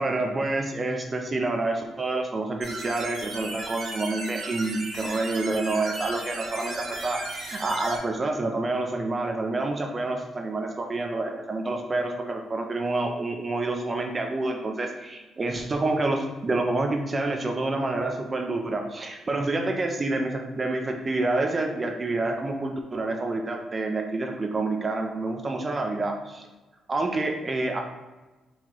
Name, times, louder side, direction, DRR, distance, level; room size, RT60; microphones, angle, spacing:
voice 1, 0.0-26.5 26.9-27.8, right 2 dB, 25° right, 3 dB, 0.4 m, -28 dB
sound 1, 2.6-8.0, right 2 dB, 65° right, 1.4 m, -35 dB
4.6 x 3.9 x 2.9 m, 1.2 s
cardioid pair, 170°, 0 cm